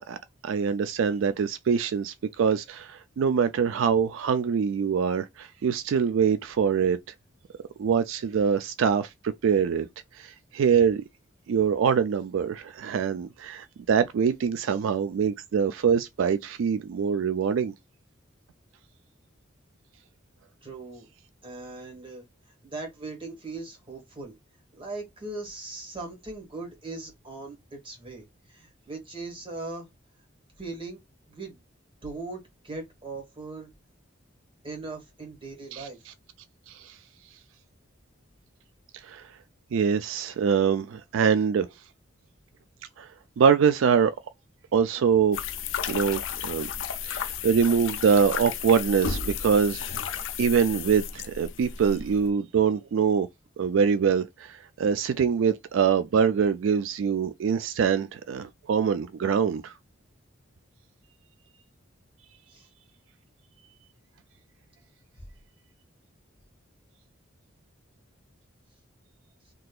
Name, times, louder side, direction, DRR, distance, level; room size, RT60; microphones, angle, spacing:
voice 1, 0.4-7.0 7.8-9.1 9.4-9.9 10.1-11.0 11.5-17.7 35.7-35.9 36.7-37.0 39.0-39.2 39.7-41.7 43.0-43.1 43.4-44.1 44.7-45.4 45.9-46.7 47.0-53.3 53.6-59.7, right 6 dB, 80° right, 0.3 m, -24 dB
voice 2, 20.6-21.1 21.4-24.3 24.8-29.9 30.6-31.0 31.3-31.6 32.0-33.7 34.6-36.1 62.5-62.7 65.2-65.3 69.4-69.5, right 3 dB, 25° right, 1.6 m, -39 dB
sound 1, 45.3-52.3, left 7 dB, 75° left, 0.5 m, -33 dB
3.7 x 2.8 x 2.3 m
head